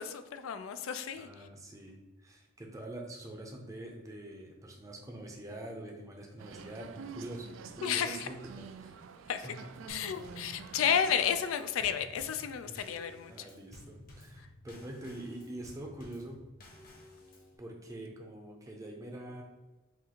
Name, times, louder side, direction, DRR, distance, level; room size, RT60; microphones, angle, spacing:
voice 1, 0.0-1.3 7.8-8.3 9.3-9.5 9.9-13.5, left 8 dB, 80° left, 10 dB, 0.4 m, -32 dB
voice 2, 1.1-8.4 8.8-9.0 9.4-9.9 12.6-12.8 13.3-16.4 17.6-19.4, right 1 dB, 15° right, 1 dB, 0.5 m, -45 dB
sound 1, 6.4-11.4, right 5 dB, 70° right, 0.3 m, -47 dB
Drum kit / Snare drum / Bass drum, 9.9-17.6, left 1 dB, 45° left, 0.9 m, -53 dB
6.1 x 2.5 x 2.9 m, 1.1 s
head